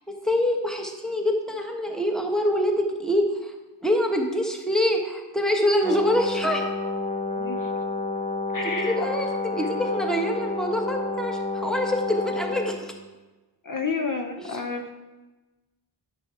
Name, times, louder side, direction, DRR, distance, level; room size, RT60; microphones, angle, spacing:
voice 1, 0.2-3.5 3.8-6.7 8.8-12.9 14.4-14.6, equal, ahead, 2 dB, 1.3 m, -25 dB
Brass instrument, 5.8-12.8, left 3 dB, 15° left, 1.2 m, -29 dB
voice 2, 7.4-7.7 8.5-9.0 13.6-14.9, left 4 dB, 45° left, 4 dB, 0.7 m, -30 dB
9.7 x 6.8 x 4.7 m, 1.2 s
wide cardioid pair, 65°, 44 cm